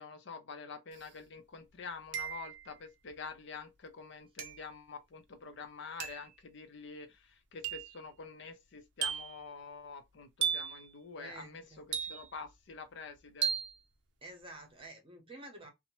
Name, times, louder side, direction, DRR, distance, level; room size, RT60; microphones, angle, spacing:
voice 1, 0.0-13.5, left 4 dB, 60° left, 0.5 m, -47 dB
sound 1, 1.0-1.1 2.1-2.7 4.4-4.7 6.0-6.3 7.6-8.0 9.0-9.4 10.4-10.8 11.9-12.5 13.4-13.8, right 7 dB, 60° right, 0.5 m, -35 dB
voice 2, 11.2-11.9 14.2-15.7, right 2 dB, 25° right, 0.8 m, -50 dB
2.7 x 2.1 x 3.0 m
head